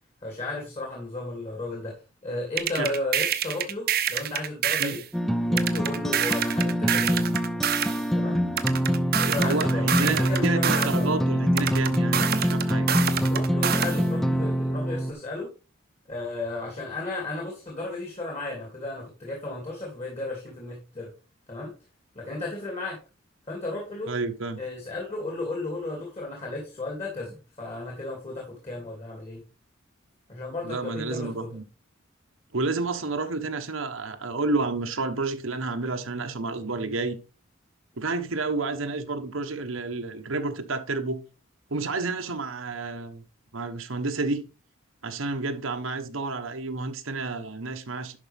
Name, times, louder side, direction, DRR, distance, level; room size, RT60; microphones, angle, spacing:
voice 1, 0.2-5.0 5.5-7.3 8.1-8.4 9.2-11.1 13.3-15.5 16.1-21.1 21.5-21.7 22.1-23.0 23.5-24.1 24.6-29.4 30.3-31.5, left 2 dB, 30° left, 2.7 m, -34 dB
sound 1, 2.6-5.0 5.6-8.0 8.6-11.0 11.6-14.0, right 9 dB, 50° right, 0.9 m, -27 dB
sound 2, 5.1-15.1, equal, ahead, 0.6 m, -25 dB
voice 2, 9.3-12.9 24.1-24.6 30.6-31.6 32.5-37.2 38.0-41.2 41.7-43.2 43.5-44.5 45.0-48.2, right 3 dB, 80° right, 1.2 m, -30 dB
11.0 x 5.3 x 3.5 m
head